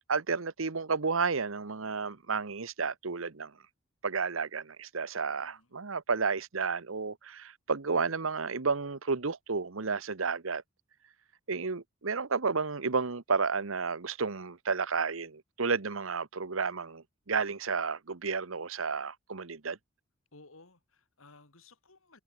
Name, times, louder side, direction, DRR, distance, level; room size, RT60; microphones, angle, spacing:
voice 1, 0.1-3.5 4.0-10.6 11.5-19.8, right 5 dB, 85° right, 1.1 m, -32 dB
voice 2, 5.4-5.7 20.3-22.2, left 3 dB, 85° left, 3.2 m, -57 dB
head